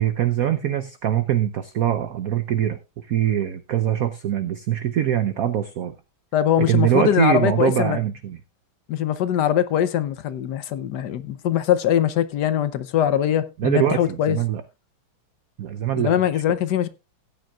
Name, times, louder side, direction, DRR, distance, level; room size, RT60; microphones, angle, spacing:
voice 1, 0.0-5.9 6.6-8.4 13.6-14.6 15.6-16.4, right 11 dB, 70° right, 0.8 m, -23 dB
voice 2, 6.3-8.0 8.9-14.4 16.0-16.9, left 10 dB, 65° left, 1.2 m, -22 dB
17.0 x 9.1 x 2.4 m
omnidirectional pair, 2.2 m